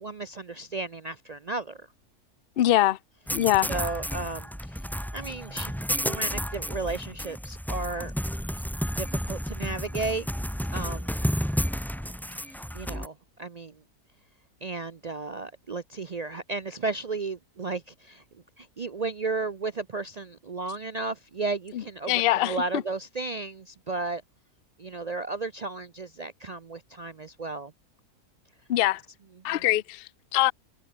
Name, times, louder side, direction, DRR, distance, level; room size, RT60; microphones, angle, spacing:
voice 1, 0.0-1.9 2.7-2.9 3.7-4.9 5.1-5.7 6.0-8.1 9.0-10.3 10.7-11.1 12.5-13.7 14.6-18.2 18.6-24.2 24.8-27.7 29.5-29.6, right 3 dB, 55° right, 0.4 m, -34 dB
voice 2, 2.6-3.0 3.3-3.7 21.7-22.8 28.7-29.0 29.4-30.5, left 14 dB, 60° left, 0.6 m, -24 dB
sound 1, 3.3-13.1, equal, ahead, 1.9 m, -31 dB
omnidirectional pair, 1.6 m